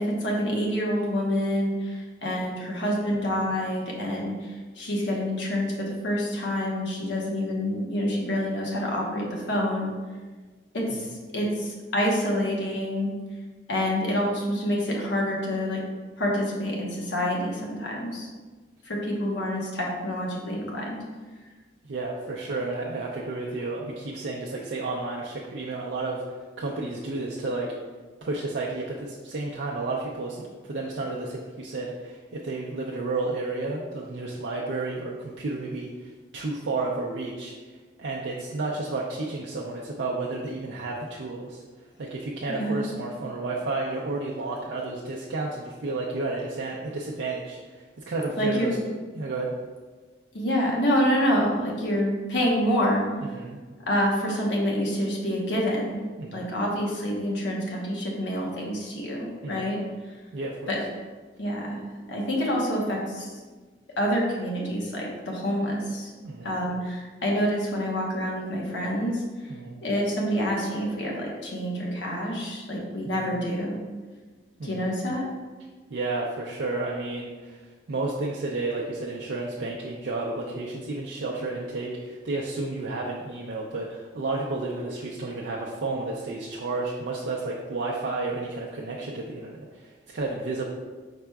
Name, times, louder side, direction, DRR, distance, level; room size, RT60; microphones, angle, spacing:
voice 1, 0.0-9.9 10.7-13.1 13.7-15.8 16.2-18.3 18.8-21.0 42.5-42.9 48.4-48.7 50.3-53.0 53.9-56.0 56.3-59.8 60.7-60.8 61.4-61.8 62.1-63.3 64.0-66.1 66.4-69.2 69.8-73.8 74.6-75.2, equal, 90° left, -2 dB, 1.0 m, -27 dB
voice 2, 21.8-27.7 28.2-37.7 38.0-41.6 42.0-48.8 49.1-49.5 53.3-53.6 56.2-56.5 59.4-59.7 60.3-60.7 66.2-66.6 69.5-69.8 73.1-73.3 74.6-75.0 75.9-90.7, right 3 dB, 90° right, -3 dB, 0.5 m, -32 dB
4.9 x 4.4 x 2.3 m, 1.4 s
head